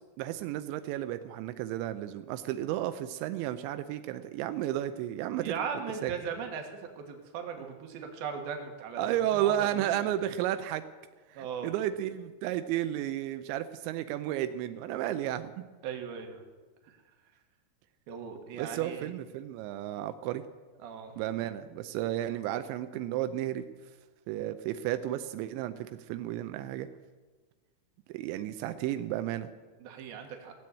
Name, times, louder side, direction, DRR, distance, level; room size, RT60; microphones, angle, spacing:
voice 1, 0.2-5.5 6.0-6.1 9.0-10.8 11.3-15.6 18.6-20.4 21.2-23.6 24.3-26.9 28.1-29.5, right 12 dB, 90° right, 10 dB, 2.9 m, -32 dB
voice 2, 5.4-10.1 11.4-11.7 15.8-16.4 16.8-17.0 18.1-19.1 20.8-21.2 29.8-30.5, right 6 dB, 65° right, 4 dB, 3.1 m, -38 dB
16.5 x 7.6 x 8.5 m, 1.3 s
omnidirectional pair, 5.1 m